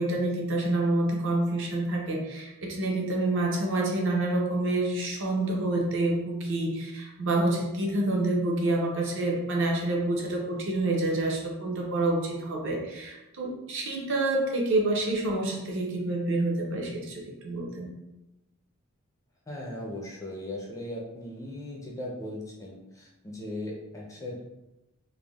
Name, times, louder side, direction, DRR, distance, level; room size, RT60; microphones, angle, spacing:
voice 1, 0.0-17.9, right 2 dB, 60° right, -1 dB, 0.6 m, -28 dB
voice 2, 19.5-24.4, left 1 dB, 15° left, -2 dB, 0.4 m, -38 dB
3.4 x 2.1 x 2.3 m, 0.97 s
head